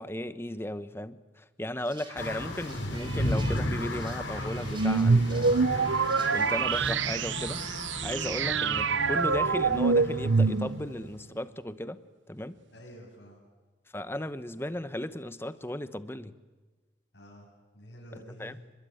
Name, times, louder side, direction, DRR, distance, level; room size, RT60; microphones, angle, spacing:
voice 1, 0.0-5.7 6.3-7.6 8.0-12.0 12.3-12.5 13.9-16.3 18.4-18.6, left 1 dB, 15° left, 13 dB, 0.9 m, -36 dB
sound 1, 1.8-7.7, right 4 dB, 25° right, 4.3 m, -48 dB
sound 2, 2.2-11.2, left 1 dB, 90° left, 5.4 m, -35 dB
sound 3, 4.7-11.0, right 4 dB, 85° right, 0.8 m, -26 dB
voice 2, 12.7-13.4 17.1-17.5 17.7-18.6, equal, 65° left, -5 dB, 7.4 m, -49 dB
30.0 x 21.5 x 9.3 m, 1.3 s
head